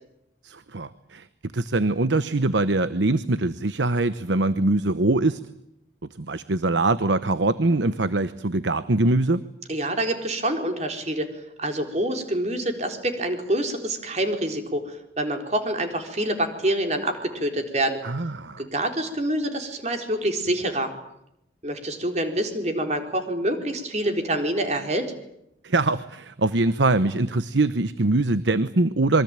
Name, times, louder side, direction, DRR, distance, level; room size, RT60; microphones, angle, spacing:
voice 1, 0.4-1.3 1.5-5.4 6.2-9.4 18.0-18.6 25.6-29.2, right 2 dB, 90° right, 13 dB, 1.0 m, -23 dB
voice 2, 9.7-11.3 11.6-18.0 18.6-20.9 21.6-25.0, right 1 dB, 40° right, 5 dB, 4.1 m, -26 dB
27.0 x 23.0 x 8.9 m, 0.80 s
head